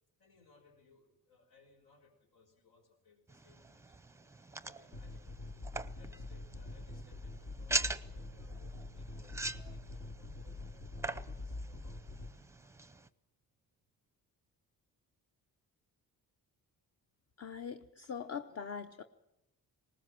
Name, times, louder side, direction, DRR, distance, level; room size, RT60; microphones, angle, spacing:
voice 1, 0.2-4.0 4.6-5.4 5.9-12.1 13.1-13.2, left 4 dB, 85° left, 4 dB, 5.5 m, -66 dB
sound 1, 3.3-13.1, right 2 dB, 10° right, 0.6 m, -43 dB
sound 2, 4.9-12.3, left 2 dB, 70° left, 2.7 m, -45 dB
voice 2, 17.4-19.0, left 6 dB, 40° left, 7 dB, 0.9 m, -42 dB
19.5 x 19.5 x 7.6 m, 0.90 s
cardioid pair, 120°, 37 cm